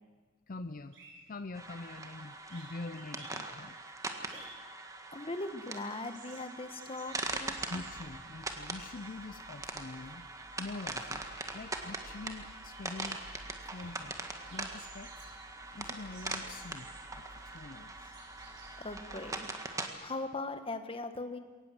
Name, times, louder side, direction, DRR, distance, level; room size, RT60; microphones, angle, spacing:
voice 1, 0.5-1.0 1.3-3.7 7.0-7.1 7.7-10.3 10.6-11.3 11.5-13.2 13.6-15.1 15.7-18.2, left 3 dB, 45° left, 11 dB, 0.6 m, -45 dB
sound 1, 0.7-0.8 0.9-2.1 2.4-5.1 5.4-9.3 9.6-19.5, right 3 dB, 65° right, 7.1 m, -57 dB
sound 2, 1.5-19.9, right 2 dB, 15° right, 1.6 m, -42 dB
voice 2, 5.1-7.6 18.4-19.5 20.0-21.4, left 2 dB, 30° left, 8 dB, 1.5 m, -40 dB
sound 3, 7.1-19.5, equal, 90° right, 6.2 m, -56 dB
22.0 x 18.5 x 7.7 m, 1.4 s
head